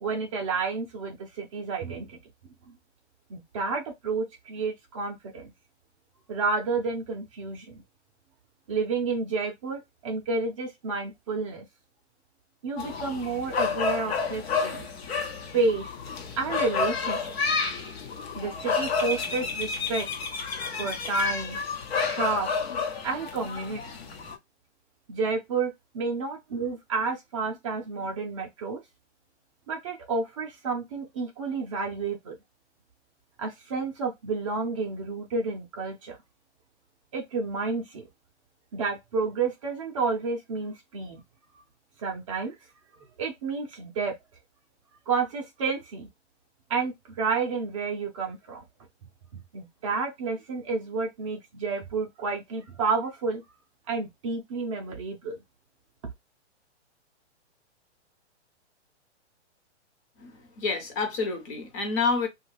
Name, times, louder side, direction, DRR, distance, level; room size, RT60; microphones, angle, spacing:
voice 1, 0.0-2.2 3.3-5.5 6.3-7.8 8.7-11.6 12.6-14.9 15.5-15.9 16.4-17.3 18.4-20.1 20.8-21.6 22.1-22.5 23.0-23.8 25.1-28.8 29.7-32.4 33.4-36.2 37.1-38.1 38.7-41.2 42.0-42.5 43.2-44.1 45.1-46.1 46.7-48.6 49.5-53.4 53.9-55.4, right 4 dB, 30° right, 0.5 m, -30 dB
sound 1, 12.8-24.4, left 5 dB, 60° left, 0.9 m, -30 dB
voice 2, 60.2-62.3, left 4 dB, 25° left, 0.9 m, -28 dB
2.8 x 2.3 x 3.1 m
hypercardioid pair, 155°, 35 cm